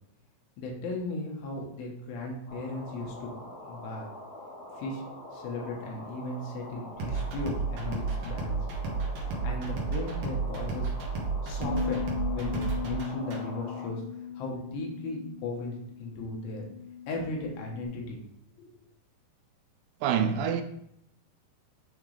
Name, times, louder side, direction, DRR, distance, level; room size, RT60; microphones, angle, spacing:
voice 1, 0.6-4.1 4.8-5.0 5.3-8.6 9.4-10.9 11.4-16.7 17.1-18.2 18.6-18.7, left 2 dB, 85° left, 3.3 m, -36 dB
sound 1, 2.5-13.9, left 1 dB, 60° left, 1.7 m, -45 dB
sound 2, 7.0-13.4, right 4 dB, 70° right, 1.7 m, -32 dB
Bass guitar, 11.6-17.9, left 6 dB, 25° left, 0.8 m, -38 dB
voice 2, 20.0-20.6, right 7 dB, 90° right, 2.7 m, -26 dB
10.0 x 3.6 x 3.3 m
omnidirectional pair, 4.9 m